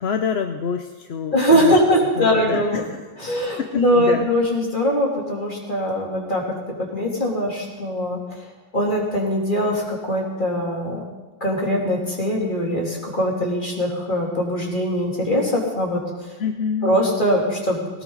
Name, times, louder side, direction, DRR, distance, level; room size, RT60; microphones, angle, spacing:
voice 1, 0.0-1.7 2.2-3.0 3.6-4.3 16.4-17.0, left 6 dB, 85° left, 6 dB, 1.1 m, -26 dB
voice 2, 1.3-2.8 3.2-6.4 6.8-8.2 8.7-11.0 11.4-16.0 16.8-18.0, equal, 50° left, -3 dB, 3.5 m, -21 dB
19.0 x 17.5 x 4.1 m, 1.2 s
omnidirectional pair, 1.0 m